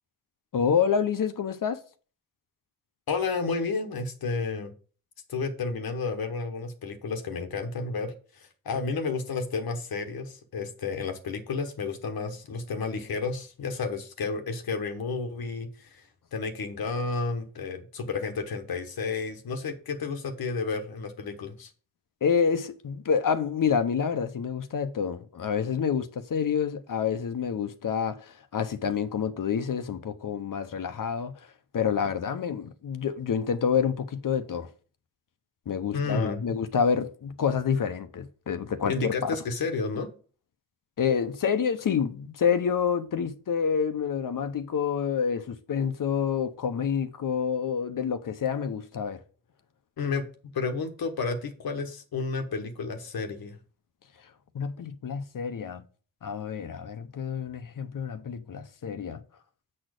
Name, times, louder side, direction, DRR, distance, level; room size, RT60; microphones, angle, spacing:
voice 1, 0.5-1.8 22.2-31.3 31.7-34.7 35.7-39.4 41.0-49.2 54.5-55.8 56.2-59.2, left 7 dB, 65° left, 0.8 m, -28 dB
voice 2, 3.1-4.7 5.3-21.7 35.9-36.4 38.8-40.1 50.0-50.2 50.5-53.6, left 4 dB, 80° left, 1.2 m, -31 dB
7.7 x 4.3 x 6.3 m
cardioid pair, 70°, 36 cm